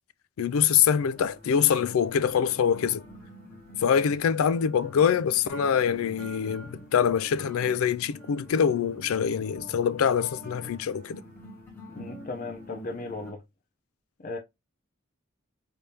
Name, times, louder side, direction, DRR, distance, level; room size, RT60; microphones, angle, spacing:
voice 1, 0.4-3.0 3.8-11.2, left 8 dB, 90° left, 0.4 m, -24 dB
sound 1, 0.5-13.3, equal, 10° left, 1.3 m, -46 dB
voice 2, 11.9-13.4 14.2-14.4, left 3 dB, 40° left, 0.6 m, -36 dB
3.4 x 2.8 x 3.3 m
head